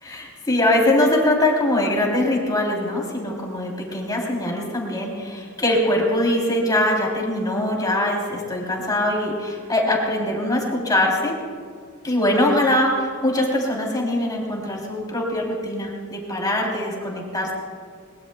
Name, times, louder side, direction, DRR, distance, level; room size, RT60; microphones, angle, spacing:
voice 1, 0.0-11.3 12.0-17.5, left 1 dB, 20° left, -1 dB, 3.3 m, -22 dB
22.0 x 21.0 x 2.3 m, 2.1 s
head